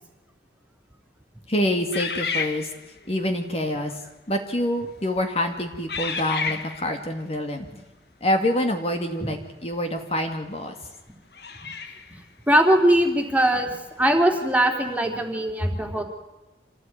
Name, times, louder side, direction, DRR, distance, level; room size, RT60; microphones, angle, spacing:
voice 1, 1.5-2.7 3.1-3.9 4.3-7.7 8.2-10.8 15.6-15.7, left 1 dB, 35° left, 4 dB, 2.4 m, -26 dB
sound 1, 1.9-3.1 3.9-4.1 4.8-5.1 5.9-7.0 9.7-9.8 11.3-12.2, left 5 dB, 60° left, 2.0 m, -31 dB
voice 2, 12.5-16.0, right 1 dB, 10° right, 3 dB, 3.3 m, -21 dB
27.0 x 17.5 x 9.5 m, 1.0 s
head